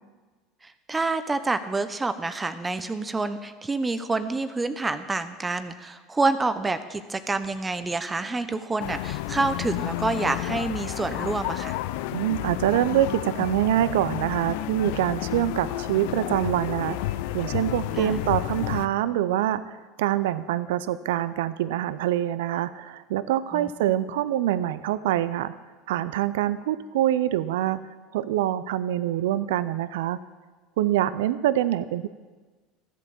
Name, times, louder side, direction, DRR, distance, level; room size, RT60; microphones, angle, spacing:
voice 1, 0.6-11.8 18.0-18.2 23.5-23.7, right 3 dB, 20° right, 11 dB, 0.9 m, -28 dB
sound 1, 8.8-18.9, left 15 dB, 70° left, 0.5 m, -31 dB
voice 2, 12.1-17.1 17.3-25.5 25.9-27.8 28.1-30.2 30.8-32.1, right 12 dB, 75° right, 15 dB, 0.5 m, -25 dB
14.0 x 8.4 x 7.1 m, 1.3 s
hypercardioid pair, 80°, 0 cm